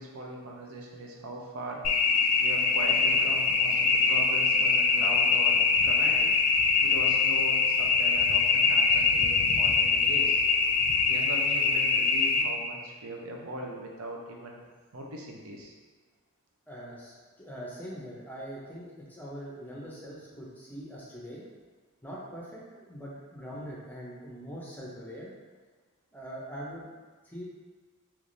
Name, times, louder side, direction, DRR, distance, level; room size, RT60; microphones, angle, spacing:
voice 1, 0.0-1.8 2.4-6.3 6.8-10.4 11.1-14.6 14.9-15.7, right 1 dB, 85° right, -1 dB, 0.6 m, -39 dB
sound 1, 1.8-12.4, left 4 dB, 80° left, 0.4 m, -24 dB
voice 2, 16.7-21.4 22.0-25.3 26.1-26.9 27.2-27.4, equal, 10° left, -5 dB, 0.5 m, -42 dB
3.4 x 3.0 x 2.6 m, 1.4 s
head